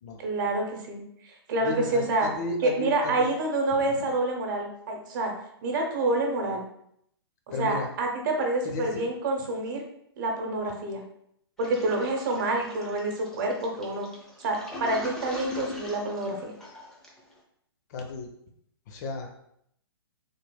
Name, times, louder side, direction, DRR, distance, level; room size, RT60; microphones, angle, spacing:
voice 1, 0.2-2.3 2.6-5.3 5.6-6.6 7.5-9.8 10.2-11.0 11.6-14.1 14.4-16.5, right 2 dB, 50° right, 2 dB, 0.9 m, -28 dB
voice 2, 1.6-3.3 3.7-4.0 7.5-7.9 8.6-9.0 17.9-18.3 18.9-19.3, left 2 dB, 40° left, 3 dB, 0.6 m, -34 dB
Toilet flush, 11.6-17.3, left 1 dB, 5° left, 0.7 m, -42 dB
4.2 x 3.3 x 2.2 m, 0.72 s
figure-of-eight pair, 120°, 14 cm